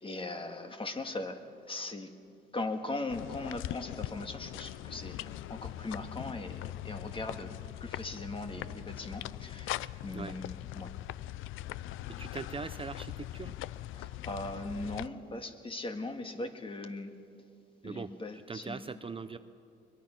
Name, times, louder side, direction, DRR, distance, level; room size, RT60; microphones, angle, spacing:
voice 1, 0.0-2.1 2.5-7.5 7.8-10.9 13.9-17.1 17.8-19.0, left 2 dB, 25° left, 6 dB, 1.9 m, -39 dB
sound 1, 3.1-15.1, left 14 dB, 85° left, 0.4 m, -41 dB
voice 2, 12.2-13.6 17.8-18.1 18.5-19.4, right 5 dB, 25° right, 11 dB, 0.6 m, -40 dB
22.0 x 22.0 x 6.0 m, 2.4 s
cardioid pair, 90°, 20 cm